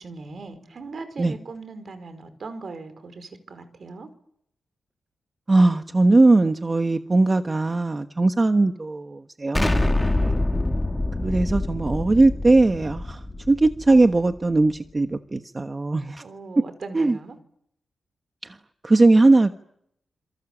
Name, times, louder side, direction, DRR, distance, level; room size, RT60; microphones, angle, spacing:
voice 1, 0.0-4.1 10.0-10.4 16.2-17.4, right 3 dB, 55° right, 10 dB, 5.2 m, -39 dB
voice 2, 5.5-9.8 11.2-16.2 16.6-16.7 16.9-17.2 18.4-18.6 18.8-19.5, right 2 dB, 25° right, 7 dB, 1.3 m, -19 dB
Explosion, 9.5-14.4, left 2 dB, 15° left, 2.8 m, -25 dB
28.5 x 27.5 x 7.5 m, 0.71 s
wide cardioid pair, 100°, 0 cm